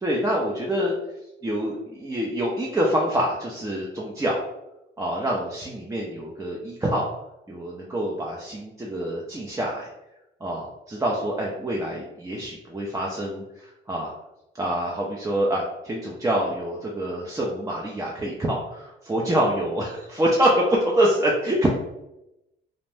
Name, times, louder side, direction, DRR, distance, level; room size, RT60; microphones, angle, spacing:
voice 1, 0.0-0.9 1.4-4.4 5.0-7.1 7.5-9.9 10.4-13.4 13.9-14.1 14.6-21.7, right 1 dB, 15° right, -3 dB, 0.4 m, -26 dB
2.6 x 2.0 x 3.2 m, 0.90 s
cardioid pair, 90°, 20 cm